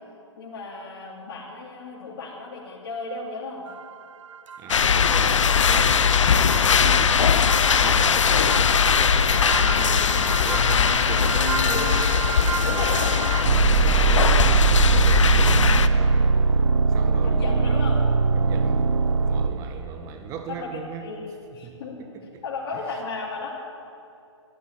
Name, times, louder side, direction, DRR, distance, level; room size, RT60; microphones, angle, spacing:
voice 1, 0.4-3.6 11.7-11.9 12.6-13.1 14.3-14.4 17.2-18.0 20.5-22.0 22.4-23.5, left 4 dB, 45° left, -5 dB, 2.8 m, -35 dB
sound 1, 3.7-3.8 4.5-4.6 4.9-5.0 5.5-19.9, right 5 dB, 85° right, 0.5 m, -23 dB
voice 2, 4.6-11.9 12.4-13.2 13.7-16.3 16.9-17.8 18.3-18.9 19.3-21.0 21.6-22.4 22.7-22.8, right 6 dB, 20° right, 6 dB, 1.2 m, -37 dB
sound 2, 4.7-15.9, left 7 dB, 80° left, 0.7 m, -20 dB
13.0 x 9.0 x 9.8 m, 2.6 s
hypercardioid pair, 145°, 16 cm